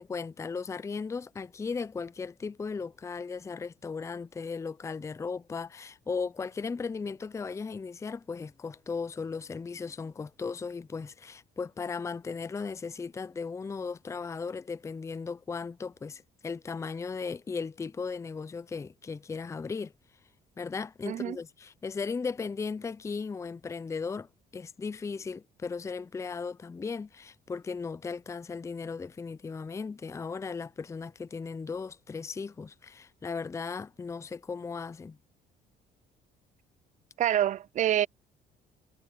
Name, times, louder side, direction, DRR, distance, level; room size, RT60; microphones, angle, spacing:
voice 1, 0.0-19.9 20.6-35.2, left 5 dB, 15° left, 0.5 m, -36 dB
voice 2, 21.1-21.4 37.2-38.1, right 11 dB, 45° right, 0.4 m, -26 dB
cardioid pair, 110°, 17 cm